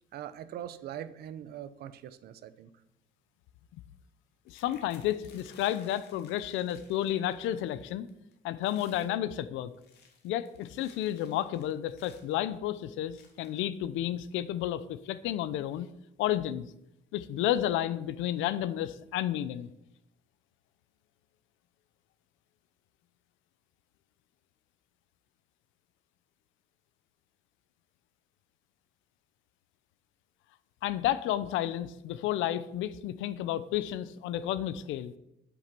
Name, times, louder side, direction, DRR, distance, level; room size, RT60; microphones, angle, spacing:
voice 1, 0.1-2.7, right 10 dB, 55° right, 13 dB, 0.8 m, -42 dB
voice 2, 4.5-8.1 8.4-9.7 10.2-15.9 16.2-16.7 17.1-19.7 30.8-35.1, left 12 dB, 85° left, 14 dB, 0.7 m, -31 dB
sound 1, 4.5-7.8 8.1-8.3 8.6-9.1 9.7-12.4 13.1-13.7 14.4-14.5 14.8-15.1, left 6 dB, 55° left, 2.3 m, -58 dB
10.5 x 8.4 x 6.0 m, 0.81 s
cardioid pair, 170°, 20 cm